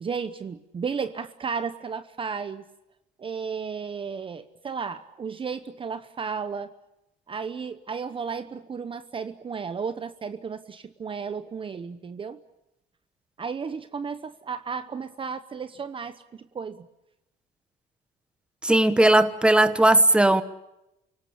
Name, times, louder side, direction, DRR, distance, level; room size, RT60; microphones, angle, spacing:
voice 1, 0.0-2.6 3.2-6.7 7.3-12.4 13.4-16.9, right 5 dB, 30° right, 0.9 m, -33 dB
voice 2, 18.6-20.4, right 1 dB, 5° right, 1.2 m, -18 dB
29.0 x 18.0 x 8.6 m
cardioid pair, 110°, 17 cm